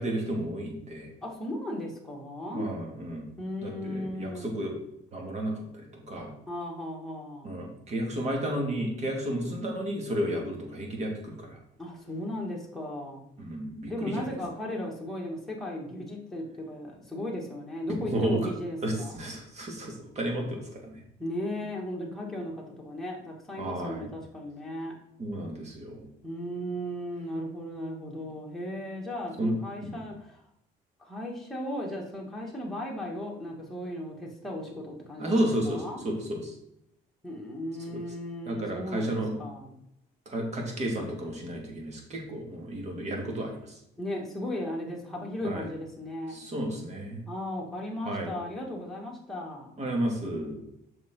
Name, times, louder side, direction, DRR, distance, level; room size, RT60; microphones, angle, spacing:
voice 1, 0.0-1.1 2.5-3.3 3.6-4.7 5.1-6.3 7.4-11.6 13.4-14.3 18.1-18.5 18.8-21.0 23.6-24.1 25.2-26.1 29.4-29.5 29.8-30.0 35.2-36.5 37.9-38.0 38.5-39.4 40.3-43.6 45.4-45.6 46.3-47.2 48.0-48.4 49.8-50.6, right 1 dB, 40° right, 1 dB, 2.3 m, -32 dB
voice 2, 1.2-2.7 3.4-4.5 6.5-7.5 11.8-13.2 13.9-19.1 21.2-24.9 26.2-30.4 31.0-36.1 37.2-39.8 44.0-46.4 47.3-49.7, left 1 dB, ahead, -3 dB, 2.2 m, -36 dB
7.3 x 6.0 x 3.9 m, 0.80 s
cardioid pair, 110°, 17 cm